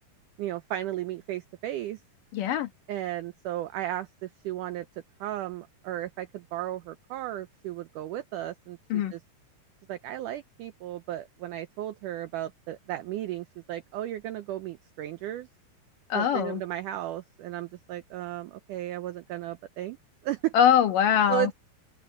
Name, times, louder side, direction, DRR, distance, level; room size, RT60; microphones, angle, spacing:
voice 1, 0.4-2.0 2.9-4.9 5.2-8.8 9.1-9.2 9.9-15.5 16.1-20.0 20.2-20.5 21.3-21.5, right 13 dB, 90° right, 1.8 m, -34 dB
voice 2, 2.3-2.7 8.9-9.1 16.1-16.6 20.5-21.5, left 9 dB, 65° left, 2.6 m, -22 dB
open air
omnidirectional pair, 4.5 m